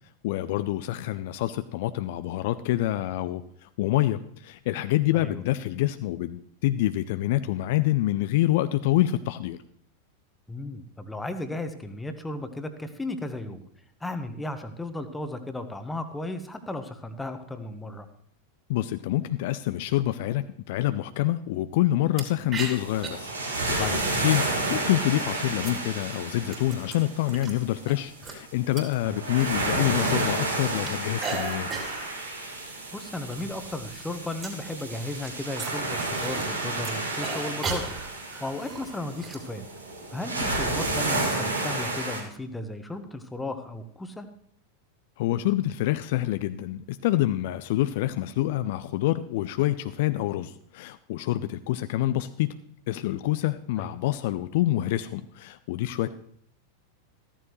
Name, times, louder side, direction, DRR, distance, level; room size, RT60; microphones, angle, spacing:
voice 1, 0.2-9.6 18.7-31.7 45.2-52.5 52.9-56.1, left 15 dB, 50° left, 12 dB, 0.5 m, -27 dB
voice 2, 10.5-13.6 14.0-18.1 24.1-24.3 29.0-29.3 32.9-39.7 40.1-44.3 53.8-53.9, left 2 dB, 10° left, 8 dB, 1.3 m, -35 dB
sound 1, 22.2-22.3 22.5-23.1 23.8-24.3 25.1-27.5 27.9-30.2 30.4-32.1 32.5-32.7 33.0-33.5 33.7-36.5 36.8-39.4, right 4 dB, 25° right, 3.2 m, -37 dB
sound 2, 22.7-42.2, right 2 dB, 75° right, 2.5 m, -31 dB
14.5 x 13.5 x 3.2 m, 0.66 s
figure-of-eight pair, 90°, 0 cm